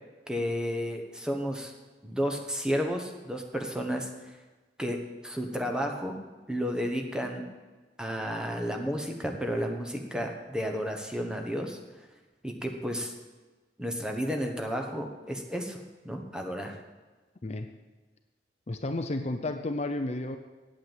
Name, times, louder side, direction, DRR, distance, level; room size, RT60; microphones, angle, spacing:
voice 1, 0.3-1.7 2.0-4.3 4.8-6.2 6.5-7.5 8.0-11.8 12.4-13.1 13.8-16.7, equal, 5° right, 3 dB, 1.1 m, -32 dB
voice 2, 18.7-20.4, left 2 dB, 40° left, 7 dB, 0.6 m, -32 dB
8.9 x 8.6 x 7.9 m, 1.3 s
head